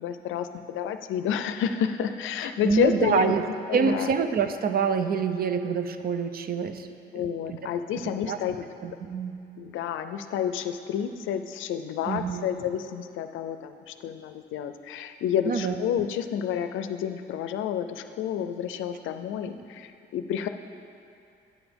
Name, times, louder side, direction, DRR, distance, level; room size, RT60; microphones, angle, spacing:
voice 1, 0.0-3.4 3.7-4.1 7.1-8.7 9.6-20.5, left 9 dB, 80° left, 9 dB, 0.5 m, -30 dB
voice 2, 2.6-3.4 3.7-6.9 7.5-7.6 8.0-8.4 8.8-9.4 12.1-12.5 15.5-15.8, right 6 dB, 50° right, 9 dB, 0.5 m, -26 dB
8.8 x 6.0 x 5.2 m, 2.5 s
cardioid pair, 90°, 20 cm